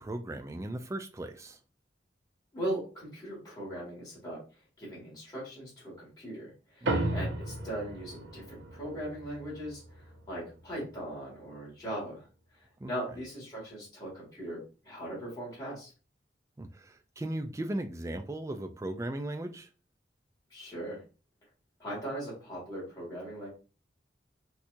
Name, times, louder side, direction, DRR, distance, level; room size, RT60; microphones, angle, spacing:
voice 1, 0.0-1.6 6.8-7.2 12.8-12.9 16.6-19.7, right 1 dB, 15° right, 0.3 m, -37 dB
voice 2, 2.5-4.4 4.8-12.2 12.8-15.9 20.5-21.0 21.8-23.5, right 1 dB, 20° left, 2.0 m, -39 dB
sound 1, 6.9-11.6, right 1 dB, 80° right, 0.7 m, -36 dB
4.3 x 2.4 x 2.6 m
head